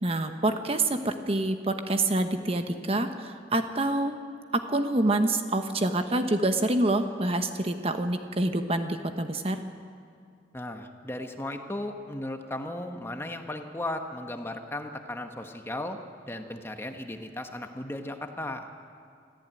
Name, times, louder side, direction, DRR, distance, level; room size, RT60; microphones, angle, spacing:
voice 1, 0.0-4.2 4.7-9.6, right 2 dB, 35° right, 7 dB, 1.1 m, -27 dB
voice 2, 10.5-16.0 16.2-18.7, left 1 dB, 15° left, 5 dB, 1.2 m, -36 dB
26.0 x 14.5 x 9.1 m, 2.3 s
head